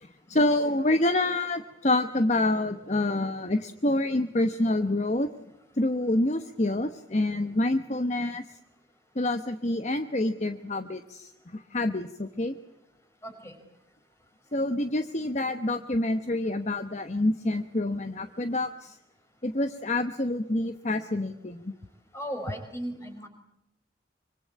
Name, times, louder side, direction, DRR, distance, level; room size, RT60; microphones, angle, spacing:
voice 1, 0.0-5.3 5.8-8.4 9.1-12.6 14.5-19.0 19.4-21.6, left 1 dB, 40° left, 9 dB, 1.0 m, -27 dB
voice 2, 13.2-13.6 22.1-23.3, equal, 15° left, 5 dB, 5.3 m, -36 dB
25.0 x 24.5 x 8.6 m, 0.84 s
head